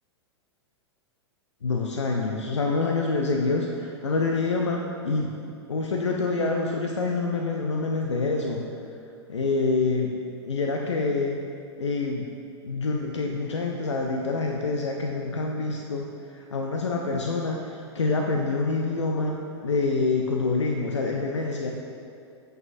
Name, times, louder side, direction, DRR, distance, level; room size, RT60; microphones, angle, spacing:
voice 1, 1.6-5.4 5.7-8.7 9.3-10.1 10.4-11.4 11.8-12.3 12.6-21.7, left 3 dB, 90° left, 1 dB, 0.5 m, -26 dB
9.4 x 5.5 x 2.6 m, 2.5 s
hypercardioid pair, 100°, 15 cm